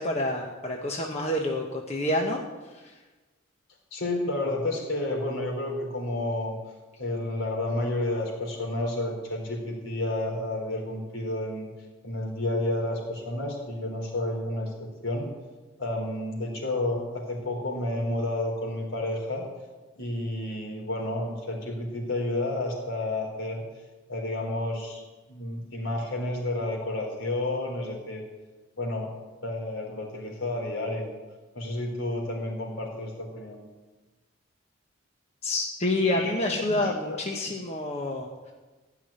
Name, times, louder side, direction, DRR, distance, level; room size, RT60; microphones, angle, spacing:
voice 1, 0.0-2.4 2.8-2.9 35.4-38.3, left 1 dB, 30° left, 0 dB, 1.1 m, -28 dB
voice 2, 3.9-6.6 7.0-11.7 12.0-15.3 15.8-19.5 20.0-23.6 24.1-25.0 25.3-28.3 28.8-29.1 29.4-31.1 31.5-33.6 36.0-37.2, left 1 dB, 75° left, 0 dB, 3.8 m, -31 dB
16.0 x 5.9 x 10.0 m, 1.2 s
head